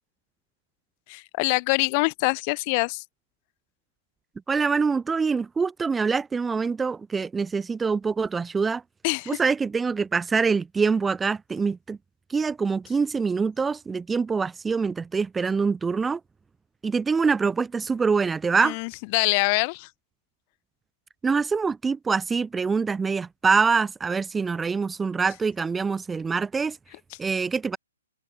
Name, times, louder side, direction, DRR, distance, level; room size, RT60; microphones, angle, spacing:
voice 1, 1.1-3.0 9.0-9.4 18.6-19.9, left 31 dB, 30° left, 1.4 m, -25 dB
voice 2, 4.5-8.8 9.3-12.0 12.3-16.2 16.8-18.8 21.2-26.8 27.2-27.8, right 5 dB, 5° right, 1.0 m, -25 dB
hypercardioid pair, 160°, 0 cm